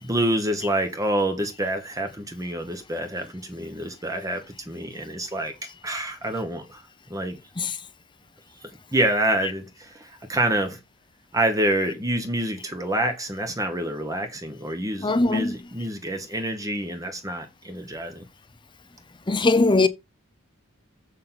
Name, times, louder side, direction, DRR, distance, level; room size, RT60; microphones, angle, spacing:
voice 1, 0.0-5.5 5.8-6.8 7.1-7.4 8.9-10.8 11.3-18.2, right 1 dB, 15° right, 1.1 m, -27 dB
voice 2, 15.0-15.6 19.3-19.9, left 3 dB, 20° left, 0.7 m, -20 dB
7.4 x 6.5 x 3.9 m
head